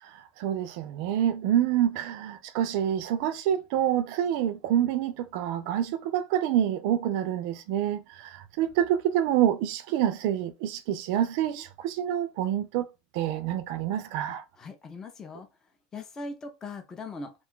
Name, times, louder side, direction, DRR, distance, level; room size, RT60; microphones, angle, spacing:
voice 1, 0.0-12.9 13.1-14.4, right 10 dB, 55° right, 0.4 m, -27 dB
voice 2, 14.3-15.5 15.9-17.3, left 3 dB, 15° left, 0.4 m, -40 dB
2.5 x 2.2 x 3.7 m
supercardioid pair, 160°, 3 cm